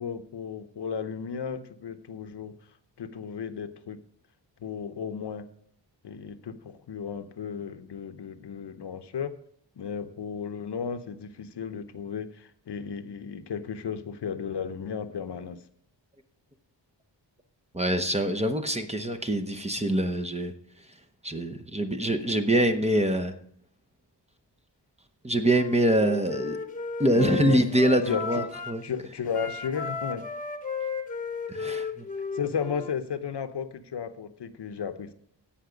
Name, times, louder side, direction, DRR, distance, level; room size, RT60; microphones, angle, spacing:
voice 1, 0.0-2.5 3.0-4.0 4.6-5.5 6.0-9.3 9.8-15.6 27.1-27.6 28.1-28.4 28.8-30.3 32.3-35.1, left 7 dB, 65° left, 10 dB, 0.8 m, -34 dB
voice 2, 17.7-20.5 21.2-23.3 25.2-26.6 27.0-28.8 31.5-32.1, right 1 dB, 15° right, 7 dB, 0.8 m, -25 dB
Wind instrument woodwind instrument, 25.4-28.8 29.3-32.9, left 5 dB, 20° left, 1.1 m, -35 dB
16.0 x 5.8 x 5.1 m, 0.66 s
wide cardioid pair, 125°, 44 cm